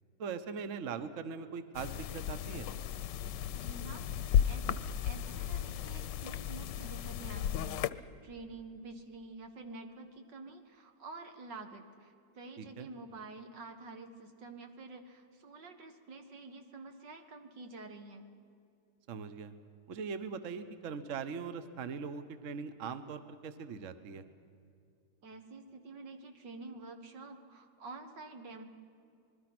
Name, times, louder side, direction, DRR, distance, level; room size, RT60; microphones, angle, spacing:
voice 1, 0.2-2.7 12.6-12.9 19.1-19.5 19.9-24.2, right 5 dB, 50° right, 10 dB, 1.2 m, -41 dB
sound 1, 1.7-7.9, left 9 dB, 85° left, 1.3 m, -34 dB
voice 2, 3.5-18.3 25.2-28.6, right 3 dB, 85° right, 6 dB, 2.4 m, -49 dB
26.0 x 21.0 x 6.1 m, 2.5 s
omnidirectional pair, 1.9 m